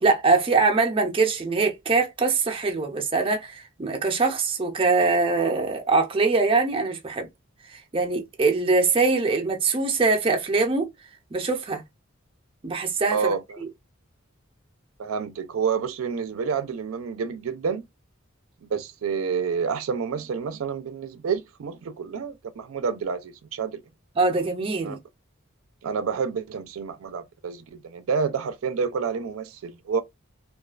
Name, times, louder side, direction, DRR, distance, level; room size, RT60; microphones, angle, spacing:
voice 1, 0.0-7.3 7.7-10.9 11.3-11.8 12.6-13.7 24.2-25.0, right 3 dB, 25° right, 0.5 m, -23 dB
voice 2, 13.1-13.6 15.0-17.8 18.6-23.8 24.8-25.0 25.8-30.0, right 6 dB, 90° right, 0.4 m, -29 dB
2.3 x 2.2 x 2.3 m
head